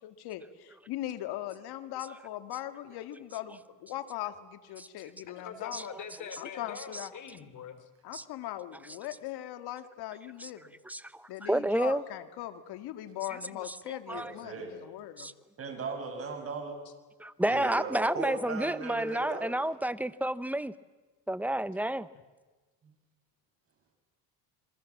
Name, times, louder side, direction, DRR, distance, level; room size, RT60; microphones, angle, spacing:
voice 1, 0.0-5.9 6.4-7.1 8.0-10.8 11.3-15.3, left 13 dB, 70° left, 10 dB, 2.0 m, -40 dB
voice 2, 5.3-7.9, left 7 dB, 45° left, 11 dB, 3.7 m, -43 dB
voice 3, 10.9-12.0 13.9-14.3 15.2-15.3 17.2-20.7 21.3-22.1, right 1 dB, 5° right, 15 dB, 0.9 m, -30 dB
voice 4, 14.1-14.8 15.6-16.8 17.4-19.5, right 4 dB, 35° right, 2 dB, 7.8 m, -37 dB
28.5 x 22.5 x 7.4 m, 1.3 s
supercardioid pair, 100°, 40 cm